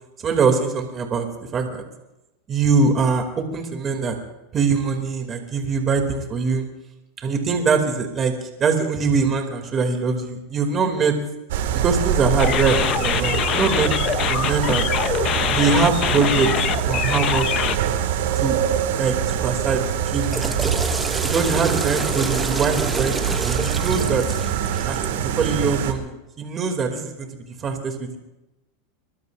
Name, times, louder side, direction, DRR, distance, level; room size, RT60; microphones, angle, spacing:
voice 1, 0.2-1.3 1.5-1.8 2.5-4.2 4.5-6.6 7.2-11.1 11.7-13.9 14.3-14.8 15.5-16.5 16.9-17.5 18.3-18.6 19.0-20.5 21.2-24.3 24.8-28.2, right 5 dB, 25° right, 3 dB, 2.8 m, -23 dB
sound 1, 11.5-25.9, right 9 dB, 80° right, 2.1 m, -24 dB
sound 2, 12.4-17.8, left 11 dB, 40° left, 0.8 m, -24 dB
Water / Toilet flush, 20.2-25.3, right 2 dB, 5° right, 0.9 m, -29 dB
24.0 x 23.0 x 2.6 m, 0.95 s
supercardioid pair, 135°, 0 cm